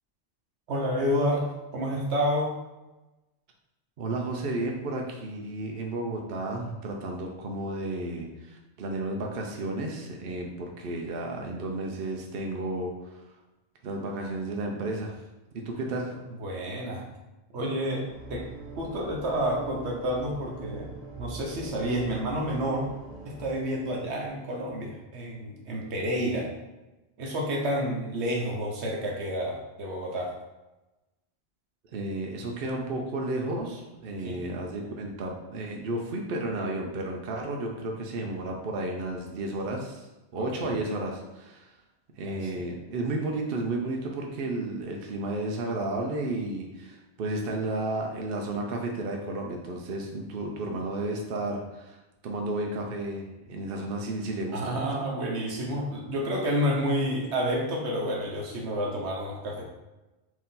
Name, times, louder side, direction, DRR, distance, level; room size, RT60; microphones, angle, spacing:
voice 1, 0.7-1.4 1.7-2.5 16.3-17.0 17.5-18.5 18.8-22.9 23.3-26.5 27.2-30.3 34.2-34.4 40.4-40.8 42.2-42.5 54.5-59.6, equal, 85° right, 0 dB, 1.1 m, -29 dB
voice 2, 4.0-12.9 13.8-15.1 15.7-16.1 31.9-40.1 40.3-41.7 42.2-52.0 52.2-54.7, right 2 dB, 60° right, 1 dB, 0.8 m, -32 dB
sound 1, 18.0-24.3, right 2 dB, 25° right, 1.5 m, -43 dB
4.6 x 2.7 x 3.7 m, 1.0 s
omnidirectional pair, 1.1 m